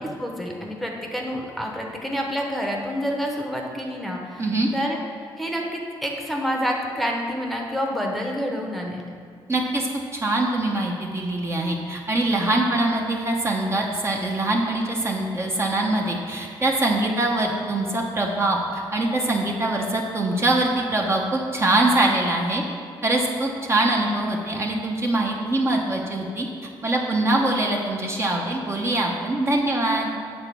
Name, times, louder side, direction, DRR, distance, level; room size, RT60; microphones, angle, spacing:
voice 1, 0.2-5.0 5.4-9.0, equal, ahead, 0 dB, 0.9 m, -28 dB
voice 2, 9.5-22.6 23.0-26.5 26.8-30.1, right 2 dB, 30° right, 0 dB, 0.8 m, -23 dB
8.1 x 4.0 x 6.8 m, 2.2 s
cardioid pair, 125°, 9 cm